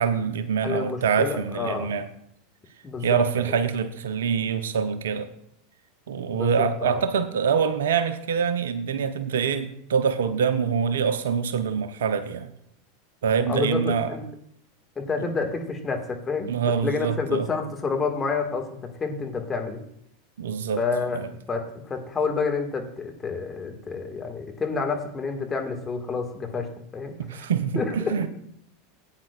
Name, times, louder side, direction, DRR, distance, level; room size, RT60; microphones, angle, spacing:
voice 1, 0.0-2.1 3.0-5.3 6.1-12.5 13.2-14.1 15.2-15.3 16.5-17.5 20.4-20.8 21.1-21.3 27.2-28.3, right 6 dB, 75° right, 0.8 m, -25 dB
voice 2, 0.6-1.9 2.8-3.6 6.3-7.0 13.5-14.2 15.0-16.5 16.8-19.8 20.8-27.5 27.8-28.2, left 4 dB, 20° left, 2.0 m, -29 dB
15.5 x 8.9 x 2.5 m
hypercardioid pair, 85°, 0 cm